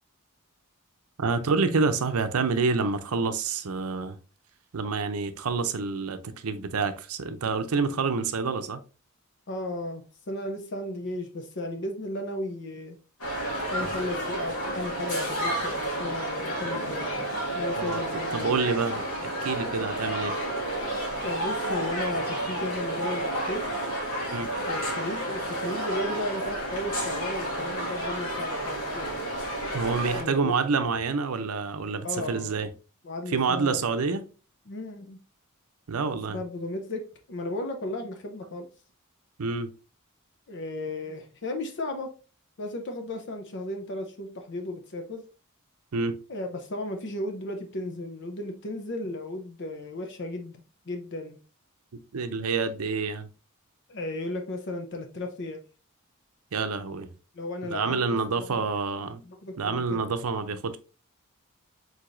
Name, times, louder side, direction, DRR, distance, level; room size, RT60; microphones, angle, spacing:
voice 1, 1.2-4.2 4.7-8.8 17.8-18.0 18.3-20.3 24.3-24.5 29.7-32.7 33.3-34.2 35.9-36.4 39.4-39.7 45.9-46.2 52.1-53.3 56.5-57.1 57.7-59.2 59.6-60.8, right 4 dB, 70° right, 0.6 m, -27 dB
voice 2, 9.5-13.0 13.7-17.1 17.5-18.7 21.2-23.7 24.7-29.2 30.2-30.5 30.8-31.0 32.0-32.5 33.0-33.8 34.7-35.2 36.3-38.7 40.5-42.1 42.6-45.2 46.3-51.4 53.9-55.6 57.3-58.6 59.2-60.1, left 1 dB, 55° left, 0.7 m, -35 dB
sound 1, 13.2-30.2, right 1 dB, 85° left, 2.2 m, -31 dB
4.8 x 4.0 x 2.6 m
head